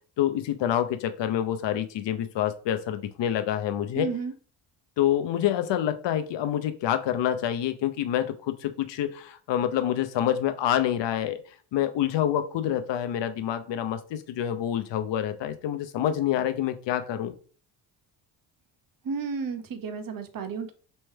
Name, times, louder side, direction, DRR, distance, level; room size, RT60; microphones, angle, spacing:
voice 1, 0.2-4.1 5.0-11.4 11.7-17.3, left 11 dB, 60° left, 9 dB, 0.7 m, -27 dB
voice 2, 3.9-4.3 19.0-20.7, right 5 dB, 45° right, 8 dB, 0.9 m, -32 dB
3.2 x 3.1 x 4.4 m, 0.40 s
supercardioid pair, 60°, 49 cm